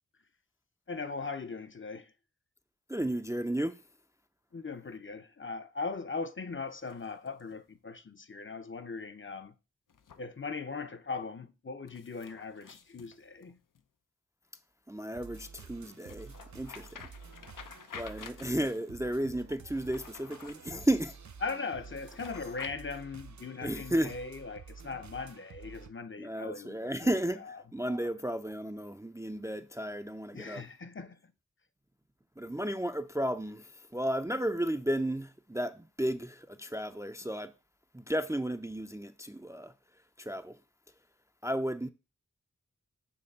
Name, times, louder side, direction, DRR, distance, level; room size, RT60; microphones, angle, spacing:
voice 1, 0.9-2.1 4.5-9.6 10.2-13.6 21.4-27.1 27.3-27.6 30.3-31.3, left 4 dB, 40° left, 0.6 m, -39 dB
voice 2, 2.9-3.8 14.9-16.9 17.9-21.2 23.6-24.1 26.2-30.6 32.4-37.5 37.9-39.7 40.2-40.6 41.4-41.9, right 1 dB, 10° right, 0.4 m, -33 dB
sound 1, 6.7-7.6 9.9-10.2 11.9-13.8 15.9-18.8 19.7-20.9 21.9-22.7, left 6 dB, 85° left, 0.6 m, -50 dB
sound 2, 15.1-25.9, right 5 dB, 65° right, 0.6 m, -50 dB
6.7 x 3.2 x 5.3 m
wide cardioid pair, 40°, 31 cm